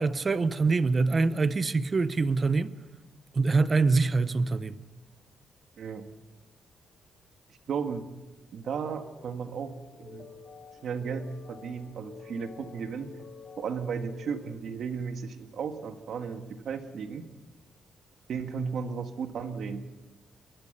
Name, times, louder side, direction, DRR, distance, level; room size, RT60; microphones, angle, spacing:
voice 1, 0.0-2.7 3.3-4.8, right 3 dB, 30° right, 0.7 m, -25 dB
voice 2, 5.8-6.1 7.7-8.0 8.5-10.3 10.8-13.1 13.6-17.2 18.3-19.8, right 6 dB, 60° right, 1.8 m, -35 dB
sound 1, 8.6-14.4, left 5 dB, 40° left, 6.5 m, -49 dB
24.5 x 22.0 x 6.8 m
cardioid pair, 145°, 0 cm